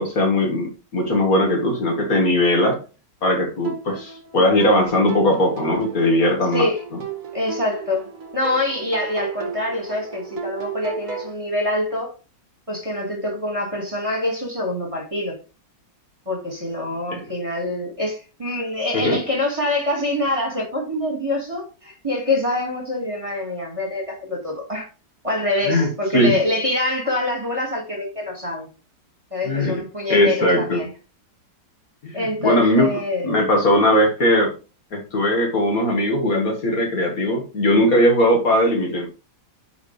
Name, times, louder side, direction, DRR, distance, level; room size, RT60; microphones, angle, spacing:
voice 1, 0.0-2.8 3.2-6.7 17.1-17.2 18.9-19.2 25.7-25.9 26.1-26.4 29.5-29.8 30.1-30.8 32.0-32.9 33.2-34.5 34.9-39.1, left 1 dB, 50° left, 2.0 m, -19 dB
sound 1, 3.6-11.3, right 7 dB, 50° right, 1.5 m, -34 dB
voice 2, 7.3-8.1 8.3-12.1 12.7-15.4 16.3-24.9 25.2-28.7 29.3-30.9 32.1-33.4 33.7-33.9, left 1 dB, 20° right, 2.1 m, -25 dB
9.3 x 4.4 x 3.3 m
omnidirectional pair, 2.0 m